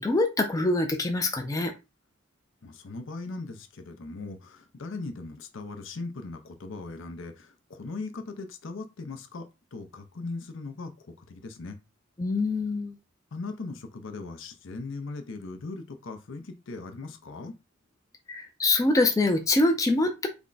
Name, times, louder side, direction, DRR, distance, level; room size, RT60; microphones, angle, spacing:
voice 1, 0.0-1.7 12.2-12.9 18.3-20.3, left 2 dB, 15° left, 4 dB, 0.4 m, -24 dB
voice 2, 2.6-9.5 9.7-10.9 11.2-11.8 13.3-17.5, left 3 dB, 65° left, 6 dB, 0.6 m, -39 dB
3.5 x 2.2 x 3.8 m, 0.26 s
head